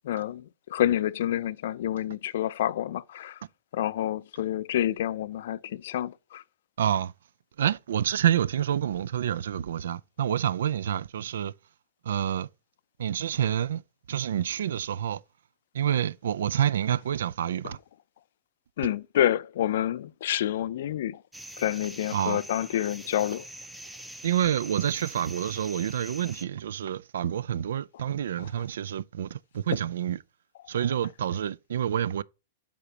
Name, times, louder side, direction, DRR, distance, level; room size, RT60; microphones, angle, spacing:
voice 1, 0.0-3.4 3.7-6.4 18.8-21.2 21.6-23.4, left 12 dB, 60° left, 0.4 m, -28 dB
voice 2, 6.8-7.1 7.6-11.5 12.0-12.5 13.0-13.8 14.1-15.2 15.7-17.8 22.1-22.4 24.2-30.2 30.7-32.2, right 10 dB, 80° right, 0.3 m, -28 dB
sound 1, 21.3-26.4, right 1 dB, 5° right, 0.5 m, -44 dB
8.2 x 5.0 x 2.8 m
supercardioid pair, 165°, 0 cm